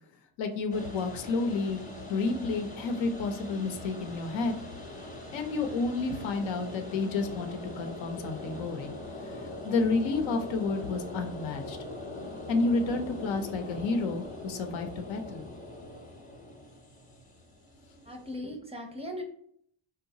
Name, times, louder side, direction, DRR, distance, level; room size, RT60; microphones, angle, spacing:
voice 1, 0.4-1.8 2.1-4.5 5.3-8.9 9.3-11.8 12.5-15.5, left 3 dB, 80° left, 6 dB, 0.7 m, -30 dB
sound 1, 0.7-18.4, left 1 dB, 15° left, 0.7 m, -42 dB
voice 2, 18.1-19.2, left 1 dB, 15° right, 2 dB, 0.5 m, -38 dB
3.8 x 2.3 x 2.7 m, 0.66 s
cardioid pair, 90°, 45 cm